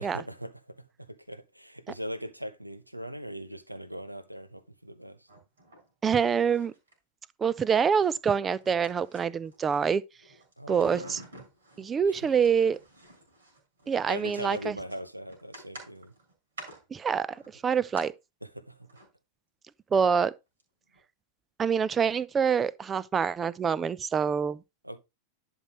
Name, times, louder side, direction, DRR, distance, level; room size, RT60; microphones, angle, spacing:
voice 1, 0.0-5.3 10.6-11.2 14.1-16.1 18.4-18.9 24.8-25.0, equal, 90° right, 0.8 m, -40 dB
sound 1, 5.3-5.9 6.2-6.9 8.0-9.8 10.2-11.9 12.3-18.1 18.8-19.1 20.6-20.7 20.9-21.0, right 2 dB, 70° right, 4.1 m, -49 dB
voice 2, 6.0-6.7 7.4-10.0 10.7-11.2 11.8-12.8 13.9-14.8 16.9-18.1 19.9-20.3 21.6-24.6, right 6 dB, 20° right, 0.4 m, -26 dB
11.0 x 5.4 x 3.1 m
figure-of-eight pair, 90°, 0 cm